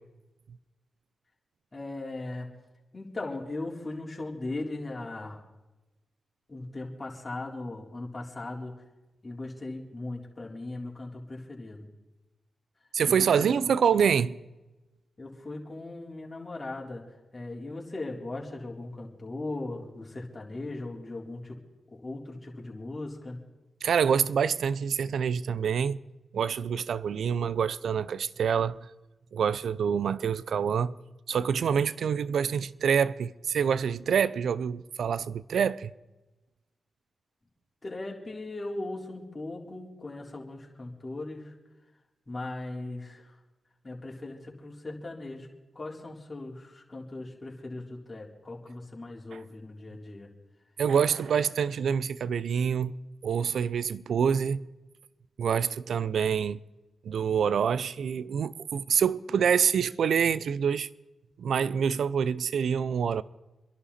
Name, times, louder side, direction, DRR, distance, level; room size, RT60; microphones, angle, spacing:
voice 1, 1.7-2.5 2.9-5.5 6.5-8.8 9.2-11.9 13.1-13.7 15.2-21.6 21.9-23.4 37.8-41.5 42.3-43.4 43.8-45.5 45.7-50.3, left 2 dB, 35° left, 4.0 m, -38 dB
voice 2, 12.9-14.4 23.8-26.0 26.3-28.8 29.3-30.9 31.3-35.9 50.8-52.9 53.2-54.6 55.4-56.6 57.0-60.9 61.4-63.2, right 7 dB, 75° right, 0.6 m, -26 dB
27.0 x 11.0 x 4.2 m
supercardioid pair, 40°, 0 cm